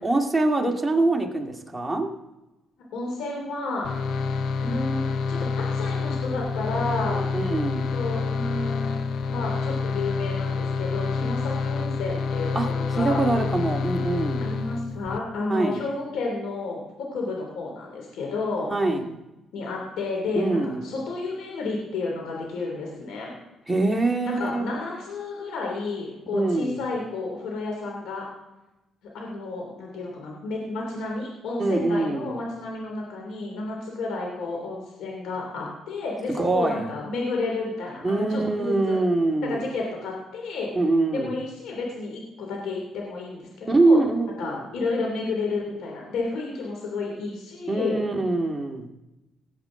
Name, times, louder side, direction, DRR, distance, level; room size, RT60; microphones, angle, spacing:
voice 1, 0.0-2.1 7.3-7.9 12.6-12.7 12.9-14.5 15.5-15.8 18.7-19.1 20.4-20.8 23.7-24.6 26.3-26.8 31.6-32.3 36.3-36.8 38.0-39.6 40.8-41.3 43.7-44.6 47.7-48.9, right 2 dB, 15° right, 1 dB, 2.1 m, -24 dB
voice 2, 2.9-3.9 4.6-7.2 7.9-13.3 14.4-18.7 19.5-23.4 24.2-28.3 29.1-39.0 39.4-40.7 41.1-44.0 44.4-48.0, left 3 dB, 85° left, -1 dB, 3.0 m, -31 dB
sound 1, 3.8-15.2, left 4 dB, 65° left, 0.6 m, -27 dB
18.5 x 8.4 x 3.8 m, 1.0 s
cardioid pair, 90°, 0 cm